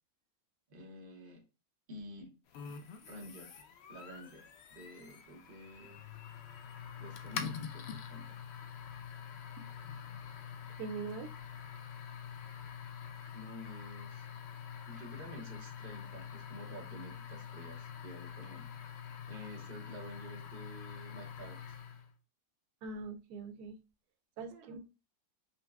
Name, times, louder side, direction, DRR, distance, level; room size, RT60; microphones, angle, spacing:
voice 1, 0.7-1.4 1.9-2.4 3.0-3.6 3.9-6.0 7.0-8.4 13.2-14.3 14.9-21.8 24.5-24.8, equal, 40° right, 1 dB, 0.9 m, -50 dB
sound 1, 2.5-22.1, left 7 dB, 80° left, 0.5 m, -46 dB
voice 2, 10.8-11.3 22.8-23.8 24.4-24.8, right 4 dB, 80° right, 8 dB, 1.1 m, -42 dB
5.3 x 2.1 x 2.2 m, 0.31 s
omnidirectional pair, 1.7 m